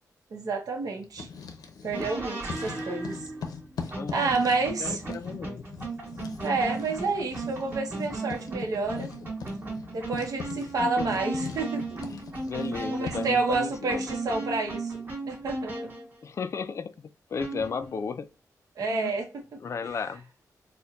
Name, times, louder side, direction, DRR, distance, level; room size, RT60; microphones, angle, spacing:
voice 1, 0.3-1.3 1.8-3.3 4.1-5.0 6.4-9.1 9.9-12.0 12.9-15.0 15.3-15.7 18.8-19.3, right 3 dB, 70° right, 0.8 m, -29 dB
Writing, 1.0-2.2 2.5-13.4, left 5 dB, 80° left, 0.6 m, -41 dB
sound 1, 1.9-16.1 17.4-18.0, right 2 dB, 30° right, 1.4 m, -36 dB
voice 2, 3.9-4.4 4.8-5.7 10.8-11.2 12.0-14.1 16.2-18.3 18.8-19.1 19.6-20.3, left 6 dB, 50° left, 0.3 m, -35 dB
4.2 x 2.2 x 2.5 m
wide cardioid pair, 125°, 6 cm